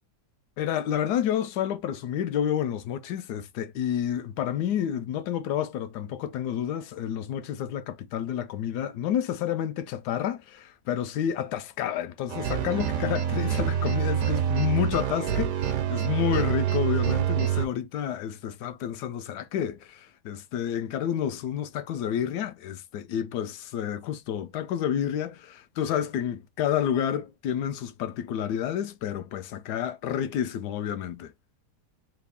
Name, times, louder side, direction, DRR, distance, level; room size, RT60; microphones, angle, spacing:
voice 1, 0.6-31.3, left 10 dB, 80° left, 1.1 m, -30 dB
sound 1, 12.3-17.7, right 9 dB, 70° right, 1.0 m, -26 dB
3.3 x 2.2 x 3.4 m
omnidirectional pair, 1.7 m